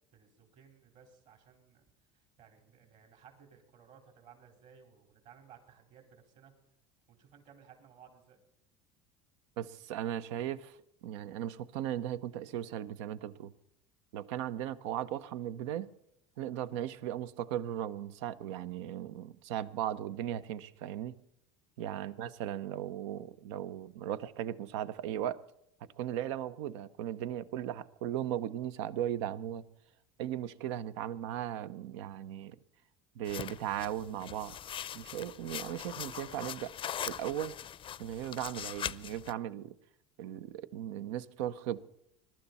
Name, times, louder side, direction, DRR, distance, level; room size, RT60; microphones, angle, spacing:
voice 1, 0.1-1.8 2.1-6.5 7.1-8.4 21.9-22.1, right 7 dB, 60° right, 4.5 m, -59 dB
voice 2, 9.6-10.8 11.0-13.5 14.1-15.9 16.4-21.2 21.8-25.4 26.0-29.6 30.2-32.6 33.1-34.6 34.9-36.7 37.1-37.6 38.0-39.8 40.2-41.8, right 11 dB, 80° right, 0.8 m, -37 dB
sound 1, 33.2-39.3, left 9 dB, 35° left, 0.5 m, -41 dB
21.5 x 12.0 x 4.2 m
supercardioid pair, 95°, 15 cm